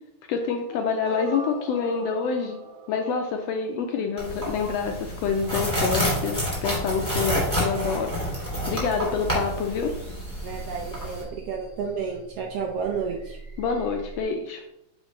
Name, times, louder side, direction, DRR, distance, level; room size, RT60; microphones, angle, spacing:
voice 1, 0.3-2.6 2.9-8.1 8.7-9.9 13.6-14.6, left 5 dB, 80° left, 4 dB, 1.5 m, -27 dB
sound 1, 0.7-4.6, right 1 dB, 60° right, 1.5 m, -41 dB
sound 2, 4.2-11.2, equal, 5° left, 2.1 m, -29 dB
sound 3, 6.3-14.2, right 5 dB, 25° right, 1.5 m, -42 dB
voice 2, 10.4-13.4, right 6 dB, 80° right, 1 dB, 1.4 m, -31 dB
9.0 x 4.0 x 3.1 m, 0.83 s
omnidirectional pair, 3.3 m